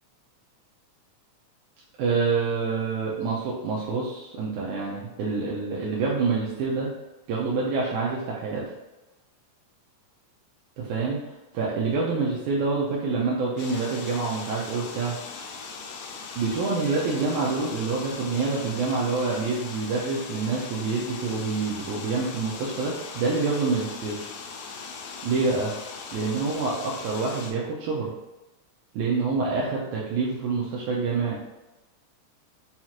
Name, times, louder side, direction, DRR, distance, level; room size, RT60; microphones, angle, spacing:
voice 1, 2.0-6.9 7.3-8.7 10.8-15.1 16.4-24.3 25.2-25.7 26.1-28.1 28.9-31.4, right 4 dB, 80° right, -5 dB, 2.0 m, -27 dB
sound 1, 13.6-27.5, left 5 dB, 80° left, 1.9 m, -39 dB
5.6 x 2.4 x 2.9 m, 1.1 s
omnidirectional pair, 3.5 m